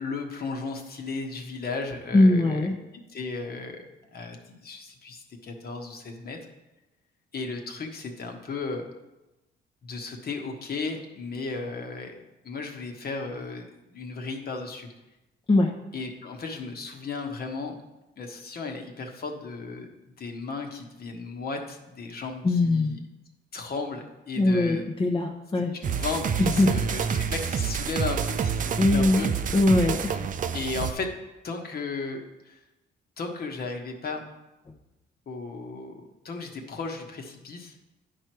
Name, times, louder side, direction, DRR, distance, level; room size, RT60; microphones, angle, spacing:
voice 1, 0.0-2.7 3.1-3.8 4.1-6.4 7.3-8.9 9.8-14.9 15.9-17.8 18.2-23.0 23.5-24.9 25.5-29.3 30.5-31.1 31.4-32.6 33.2-34.2 35.3-37.7, left 4 dB, 50° left, 3 dB, 1.2 m, -35 dB
voice 2, 2.1-2.7 15.5-15.8 22.4-22.9 24.4-25.7 26.4-26.8 28.8-30.2, left 2 dB, 25° left, 1 dB, 0.8 m, -21 dB
sound 1, 25.8-30.9, right 7 dB, 40° right, 0.5 m, -28 dB
10.0 x 4.6 x 4.6 m, 0.98 s
cardioid pair, 90°, 20 cm